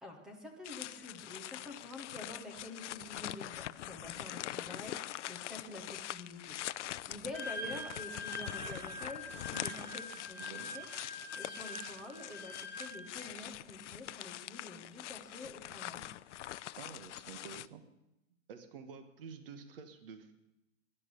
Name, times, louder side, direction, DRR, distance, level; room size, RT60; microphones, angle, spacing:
voice 1, 0.0-5.0 5.3-10.9 11.4-16.0, left 2 dB, ahead, 3 dB, 0.6 m, -48 dB
sound 1, 0.6-17.7, left 13 dB, 70° left, 0.6 m, -44 dB
Wind instrument woodwind instrument, 7.3-13.3, left 1 dB, 85° right, 7.3 m, -44 dB
voice 2, 9.5-10.0 10.4-10.7 16.8-17.8 18.5-20.4, right 6 dB, 45° right, 9 dB, 1.5 m, -50 dB
17.0 x 11.5 x 6.9 m, 0.89 s
supercardioid pair, 175°, 38 cm